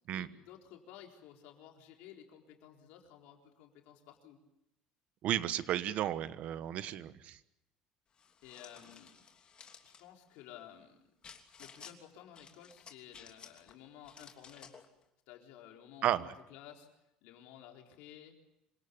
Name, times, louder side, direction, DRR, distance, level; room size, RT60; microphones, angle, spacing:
voice 1, 0.1-4.4 8.4-9.2 9.8-11.0 11.6-14.8 15.3-16.9 17.2-18.3, left 10 dB, 80° left, 2 dB, 4.1 m, -54 dB
voice 2, 5.2-7.4 16.0-16.3, right 12 dB, 60° right, 14 dB, 1.3 m, -33 dB
sound 1, 8.2-10.0 11.2-12.0 12.4-13.7 14.0-14.9, left 6 dB, 35° left, 3.1 m, -55 dB
27.0 x 17.5 x 8.7 m, 0.85 s
supercardioid pair, 105°, 3 cm